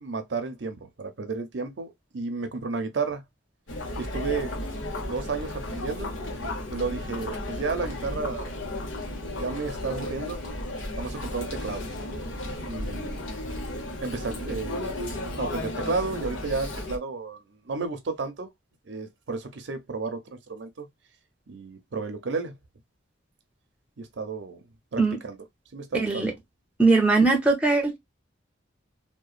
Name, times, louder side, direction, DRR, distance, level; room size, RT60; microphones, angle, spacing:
voice 1, 0.0-3.2 4.0-4.5 5.1-6.1 6.7-8.6 9.3-10.4 11.0-11.8 12.7-13.2 14.0-14.9 15.4-17.4 17.6-18.5 18.9-20.9 21.5-22.5 24.0-24.6 24.9-25.4 25.7-26.4, right 4 dB, 65° right, 0.6 m, -32 dB
Chatter, 3.7-17.0, left 1 dB, 85° left, 0.8 m, -34 dB
voice 2, 25.9-26.3 26.8-28.0, right 3 dB, 5° right, 0.6 m, -20 dB
2.9 x 2.1 x 2.4 m
head